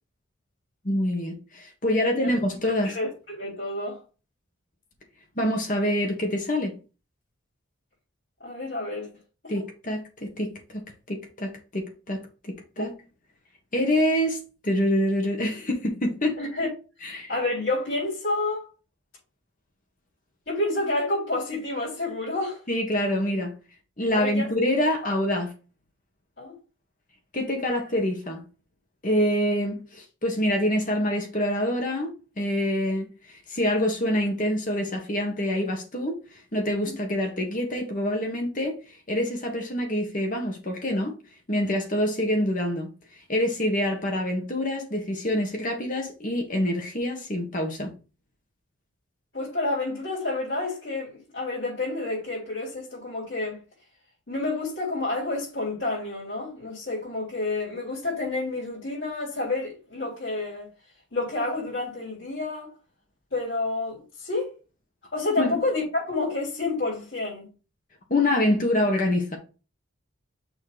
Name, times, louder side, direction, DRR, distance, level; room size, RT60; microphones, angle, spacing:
voice 1, 0.8-3.0 5.4-6.8 9.5-10.8 11.1-12.9 13.7-14.4 14.6-16.4 17.0-17.3 22.7-23.6 24.0-25.5 27.3-28.4 29.0-36.2 36.5-38.7 39.1-41.1 41.5-42.9 43.3-47.9 65.4-65.6 68.1-69.4, left 1 dB, 40° left, 1.5 m, -26 dB
voice 2, 2.0-2.3 2.8-4.0 8.4-9.1 9.4-9.6 12.8-12.9 16.4-16.7 17.0-18.7 20.5-22.6 24.1-24.5 26.4-26.6 36.9-37.0 49.3-53.6 54.3-60.7 61.1-62.7 63.3-64.6 65.1-67.5, left 2 dB, 70° left, 4.0 m, -29 dB
6.4 x 3.3 x 5.0 m
head